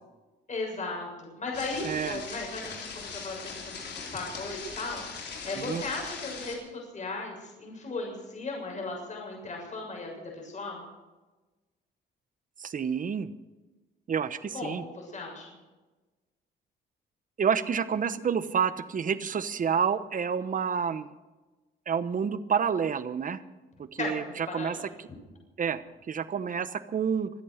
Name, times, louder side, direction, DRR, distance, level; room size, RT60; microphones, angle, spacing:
voice 1, 0.5-10.8 14.5-15.5 24.0-24.9, left 3 dB, 35° left, 0 dB, 7.0 m, -37 dB
sound 1, 1.5-6.6, left 5 dB, 60° left, 4.2 m, -40 dB
voice 2, 1.8-2.2 5.6-5.8 12.6-13.3 14.1-14.9 17.4-21.1 21.9-23.4 23.8-24.8 25.6-25.8 26.1-27.3, right 7 dB, 40° right, 14 dB, 1.0 m, -29 dB
25.0 x 8.6 x 6.6 m, 1.2 s
cardioid pair, 90°, 20 cm